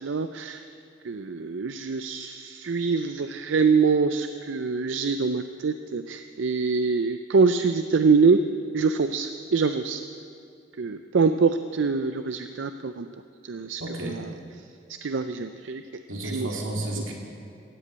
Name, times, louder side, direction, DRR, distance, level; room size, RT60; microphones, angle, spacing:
voice 1, 0.0-0.6 1.0-8.4 8.7-10.0 10.8-13.1 13.4-14.2 15.0-15.8 16.2-16.6, right 4 dB, 70° right, 9 dB, 0.5 m, -24 dB
voice 2, 13.8-14.2 16.1-17.1, right 1 dB, 90° right, -1 dB, 2.7 m, -32 dB
17.0 x 8.3 x 8.6 m, 2.5 s
head